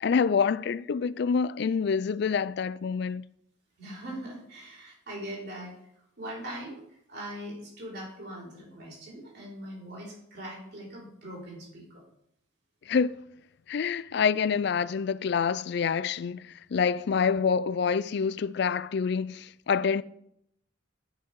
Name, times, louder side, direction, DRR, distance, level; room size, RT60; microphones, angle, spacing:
voice 1, 0.0-3.2 12.9-13.2 13.7-20.0, left 6 dB, 60° left, 0.4 m, -27 dB
voice 2, 3.8-5.8 6.2-12.0, right 1 dB, 55° right, 3.7 m, -41 dB
12.5 x 5.8 x 4.7 m
head